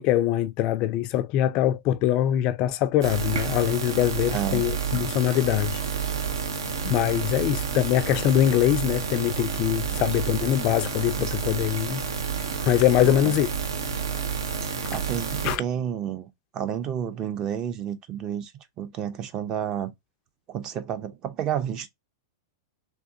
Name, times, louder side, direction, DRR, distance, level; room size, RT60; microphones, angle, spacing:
voice 1, 0.0-5.8 6.8-12.0 12.6-13.5 15.4-15.6, left 12 dB, 40° left, 0.3 m, -23 dB
sound 1, 3.0-15.6, right 6 dB, 80° right, 0.8 m, -30 dB
voice 2, 4.3-4.6 13.0-13.3 14.9-18.5 18.8-19.9 20.5-21.9, right 9 dB, 35° right, 0.6 m, -30 dB
3.5 x 2.8 x 2.6 m
hypercardioid pair, 120°, 2 cm